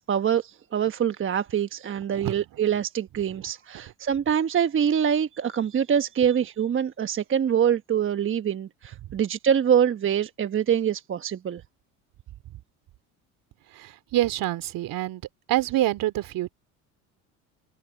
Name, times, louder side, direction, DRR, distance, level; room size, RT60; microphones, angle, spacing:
voice 1, 0.0-11.6, right 8 dB, 30° right, 1.1 m, -25 dB
voice 2, 13.7-15.2 15.5-16.5, right 15 dB, 55° right, 3.0 m, -26 dB
open air
hypercardioid pair, 80°, 40 cm